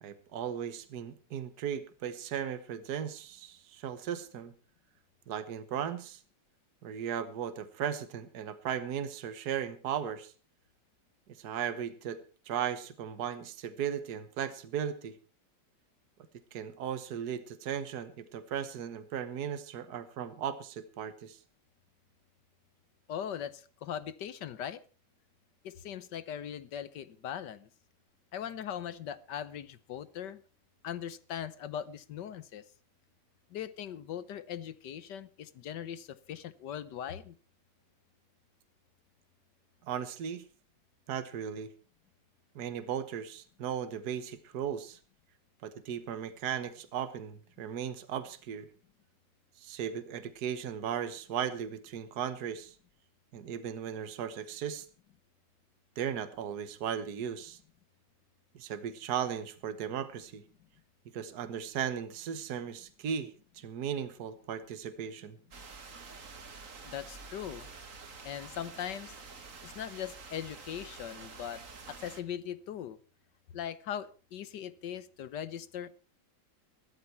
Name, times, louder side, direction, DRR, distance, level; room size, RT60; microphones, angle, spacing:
voice 1, 0.0-4.5 5.3-6.2 6.8-10.3 11.4-12.2 12.5-15.2 16.5-21.4 39.9-40.4 41.1-41.7 42.6-45.0 45.6-48.7 49.6-52.7 53.3-54.9 56.0-57.6 58.6-60.4 61.1-65.4, right 8 dB, 65° right, 11 dB, 1.7 m, -36 dB
voice 2, 23.1-24.8 25.6-27.7 28.3-30.4 30.8-32.7 33.5-37.3 66.8-67.7 68.2-69.1 69.6-71.6 71.9-73.0 73.5-75.9, left 9 dB, 80° left, 15 dB, 1.6 m, -40 dB
sound 1, 65.5-72.2, right 4 dB, 50° right, 2.0 m, -48 dB
15.5 x 13.0 x 4.5 m, 0.36 s
omnidirectional pair, 1.9 m